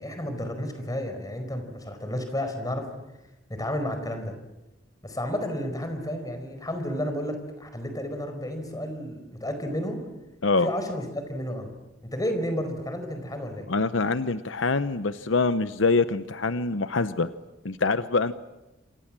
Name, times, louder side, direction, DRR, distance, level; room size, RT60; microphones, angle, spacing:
voice 1, 0.0-2.9 3.5-4.3 5.0-10.0 10.6-11.7 12.1-13.7, left 1 dB, 20° left, 7 dB, 4.9 m, -31 dB
voice 2, 13.7-17.3 17.6-18.3, left 3 dB, 75° left, 12 dB, 0.9 m, -24 dB
27.0 x 27.0 x 7.6 m, 1.0 s
head